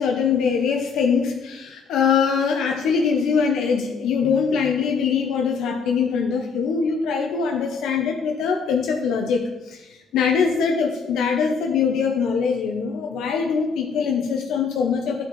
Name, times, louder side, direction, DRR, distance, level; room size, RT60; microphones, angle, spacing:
voice 1, 0.0-15.2, left 6 dB, 85° left, 2 dB, 0.6 m, -22 dB
9.5 x 4.3 x 3.0 m, 1.0 s
cardioid pair, 90°, 0 cm